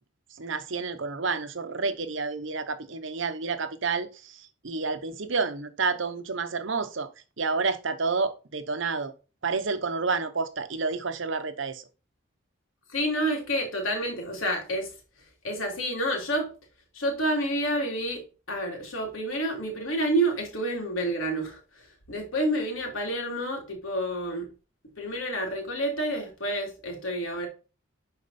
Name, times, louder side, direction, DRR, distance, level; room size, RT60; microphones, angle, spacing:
voice 1, 0.3-7.1 7.4-9.1 9.4-11.8, right 4 dB, 65° right, 0.9 m, -29 dB
voice 2, 12.9-14.9 15.4-16.5 16.9-18.2 18.5-21.6 22.1-24.5 25.0-27.5, right 1 dB, 80° left, 3.1 m, -29 dB
10.5 x 4.4 x 4.2 m
head